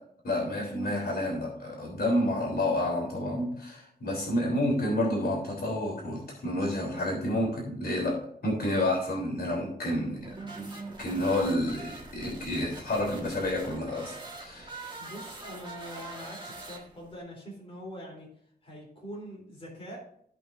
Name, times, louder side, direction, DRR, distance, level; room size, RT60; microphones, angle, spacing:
voice 1, 0.2-8.1 8.4-10.7 11.0-15.0, left 1 dB, 70° left, -2 dB, 3.3 m, -29 dB
sound 1, 10.2-17.2, right 3 dB, 25° right, 1.6 m, -43 dB
voice 2, 15.0-18.3 18.6-20.0, equal, 35° left, -3 dB, 3.5 m, -43 dB
15.5 x 5.7 x 2.6 m, 0.66 s
wide cardioid pair, 155°, 17 cm